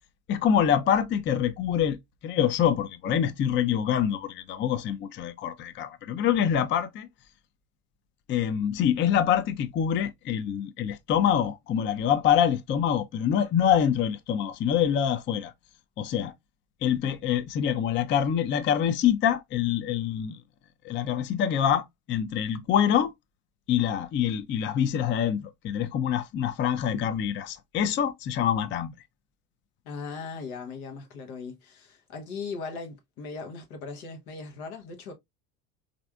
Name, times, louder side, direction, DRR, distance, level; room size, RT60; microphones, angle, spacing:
voice 1, 0.3-2.0 2.2-7.1 8.3-15.5 16.0-16.3 16.8-20.4 20.8-23.1 23.7-28.9, left 9 dB, 30° left, 0.4 m, -25 dB
voice 2, 29.8-35.1, left 4 dB, 85° left, 0.9 m, -38 dB
3.3 x 2.5 x 2.2 m
hypercardioid pair, 75°, 42 cm